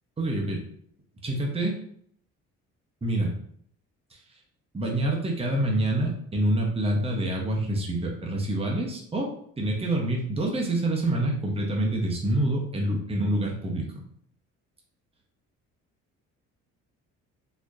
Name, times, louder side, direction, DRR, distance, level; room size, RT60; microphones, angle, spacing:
voice 1, 0.2-0.6 1.2-1.8 3.0-3.3 4.1-4.2 4.7-14.0, right 1 dB, 20° right, -1 dB, 1.0 m, -27 dB
4.1 x 3.0 x 2.6 m, 0.64 s
cardioid pair, 95°, 31 cm